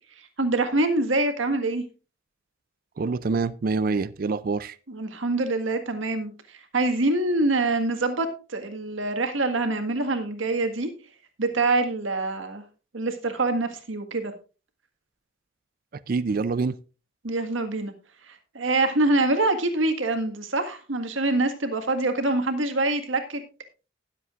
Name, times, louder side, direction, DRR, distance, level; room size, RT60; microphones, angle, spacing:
voice 1, 0.4-1.8 4.9-10.9 11.4-12.6 12.9-14.3 17.2-17.9 18.3-23.4, right 2 dB, 85° right, 1.7 m, -25 dB
voice 2, 3.0-4.8 15.9-16.8, right 4 dB, 45° right, 0.4 m, -26 dB
19.5 x 7.6 x 2.5 m
head